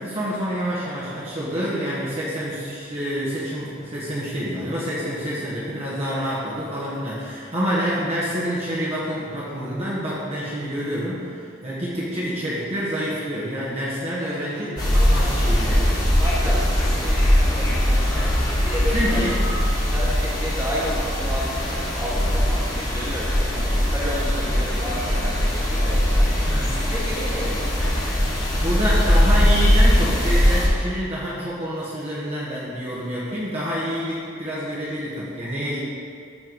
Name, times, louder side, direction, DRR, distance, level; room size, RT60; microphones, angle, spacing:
voice 1, 0.0-16.0 18.1-18.4 18.9-19.4 26.4-26.8 27.4-27.6 28.6-35.8, equal, 30° right, -8 dB, 1.6 m, -27 dB
voice 2, 14.2-15.9 16.2-18.1 18.5-19.2 19.8-23.5 23.9-26.3 26.8-27.8, equal, 15° right, -7 dB, 1.9 m, -32 dB
sound 1, 14.8-30.7, equal, 20° left, 1.7 m, -20 dB
13.5 x 4.7 x 4.7 m, 2.3 s
head